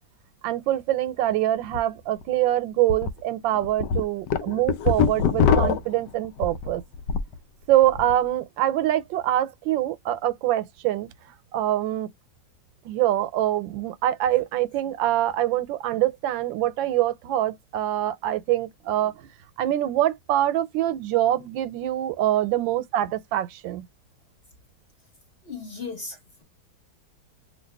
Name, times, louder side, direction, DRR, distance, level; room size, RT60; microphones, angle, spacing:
voice 1, 0.4-6.8 7.7-12.1 12.8-19.3 19.6-23.8, right 13 dB, 90° right, 1.3 m, -24 dB
sound 1, 1.6-1.8 2.2-2.3 2.9-3.1 3.5-7.4 7.7-8.1, left 6 dB, 75° left, 1.1 m, -23 dB
voice 2, 25.4-26.4, left 4 dB, 40° left, 1.2 m, -36 dB
2.8 x 2.7 x 3.3 m
omnidirectional pair, 2.0 m